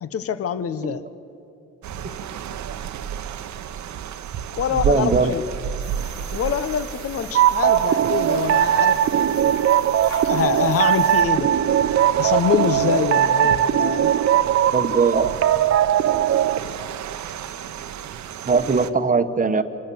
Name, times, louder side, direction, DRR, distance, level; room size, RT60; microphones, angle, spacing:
voice 1, 0.0-1.0 4.6-5.4 6.3-9.0 9.4-9.6 10.3-11.5 12.2-14.1, left 8 dB, 50° left, 14 dB, 0.9 m, -25 dB
sound 1, 1.8-18.9, right 9 dB, 70° right, 0.9 m, -33 dB
voice 2, 4.7-5.3 14.7-15.4 16.8-16.9 18.5-19.6, right 4 dB, 25° right, 10 dB, 1.1 m, -20 dB
sound 2, 5.8-11.2, left 3 dB, 80° left, 4.3 m, -43 dB
sound 3, 7.3-16.6, right 10 dB, 50° right, 0.6 m, -19 dB
26.5 x 12.5 x 7.8 m, 2.6 s
cardioid pair, 90°, 30 cm